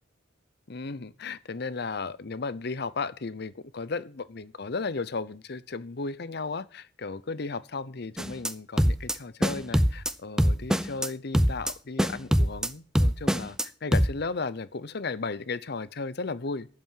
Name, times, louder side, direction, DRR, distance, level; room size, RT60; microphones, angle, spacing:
voice 1, 0.7-16.7, left 4 dB, 60° left, 0.8 m, -35 dB
sound 1, 8.2-8.5 8.8-9.1 9.4-10.1 10.4-11.1 11.3-11.7 12.0-12.7 12.9-13.6 13.9-14.1, equal, 5° right, 0.7 m, -23 dB
11.5 x 8.5 x 7.6 m
head